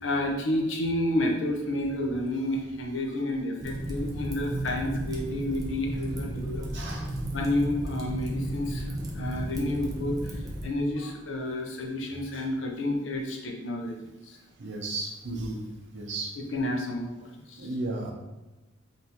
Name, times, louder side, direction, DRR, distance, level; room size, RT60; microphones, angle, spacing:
voice 1, 0.0-6.6 7.3-10.3 10.6-13.9 16.5-17.1 17.5-17.7, left 1 dB, 70° left, 1 dB, 0.7 m, -30 dB
Fire, 3.6-10.7, right 1 dB, 20° right, 0.6 m, -34 dB
voice 2, 6.7-7.1 14.6-15.6 15.9-16.3 17.6-18.1, right 2 dB, 60° right, 1 dB, 0.8 m, -34 dB
5.3 x 2.7 x 2.9 m, 1.1 s
head